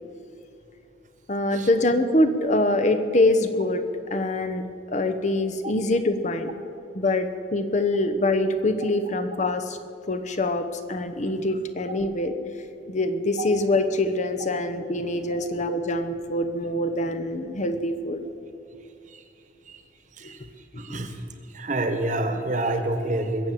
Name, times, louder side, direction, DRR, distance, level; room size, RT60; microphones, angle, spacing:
voice 1, 1.3-3.8 4.1-6.5 6.9-9.8 10.1-12.3 12.9-18.2 20.9-21.0, left 2 dB, 40° left, 9 dB, 0.8 m, -24 dB
voice 2, 20.8-21.2 21.5-23.5, right 2 dB, 45° right, 7 dB, 1.3 m, -28 dB
21.5 x 7.6 x 7.4 m, 2.5 s
head